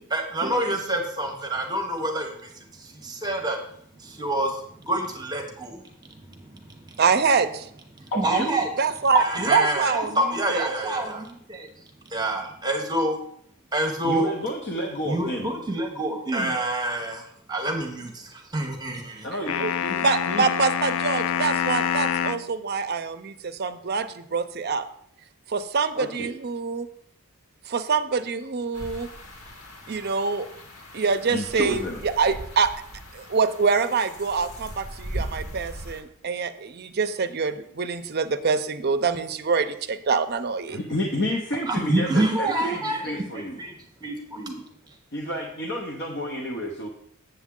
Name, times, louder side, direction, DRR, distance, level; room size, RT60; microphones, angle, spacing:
voice 1, 0.0-3.6 4.0-5.8 6.1-7.0 8.2-8.7 9.1-11.7 12.1-13.2 13.7-14.3 15.0-19.2 41.7-43.7 44.0-44.6, right 1 dB, 20° right, 3 dB, 0.9 m, -27 dB
voice 2, 7.0-7.7 8.8-9.2 9.5-10.2 10.5-10.7 20.0-24.9 25.5-26.9 27.7-29.1 29.9-30.5 30.9-32.7 33.1-40.8, right 5 dB, 50° right, 10 dB, 0.5 m, -25 dB
voice 3, 8.1-8.6 14.0-15.6 19.2-20.0 20.3-20.5 25.9-26.3 31.3-32.0 40.7-43.6 45.1-46.9, equal, 55° left, 1 dB, 0.9 m, -30 dB
sound 1, 19.5-22.5, left 8 dB, 70° left, 0.4 m, -26 dB
sound 2, 28.7-36.0, equal, 90° left, 1.5 m, -39 dB
7.9 x 7.2 x 3.7 m, 0.69 s
head